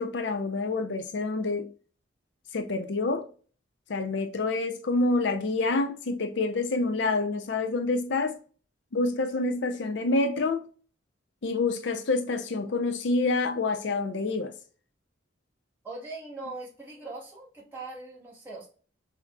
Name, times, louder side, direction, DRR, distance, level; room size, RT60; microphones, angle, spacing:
voice 1, 0.0-1.7 2.5-3.3 3.9-8.4 8.9-10.6 11.4-14.5, left 3 dB, 65° left, 0.5 m, -27 dB
voice 2, 15.8-18.7, right 2 dB, 10° right, 2.1 m, -41 dB
5.8 x 2.9 x 2.3 m
head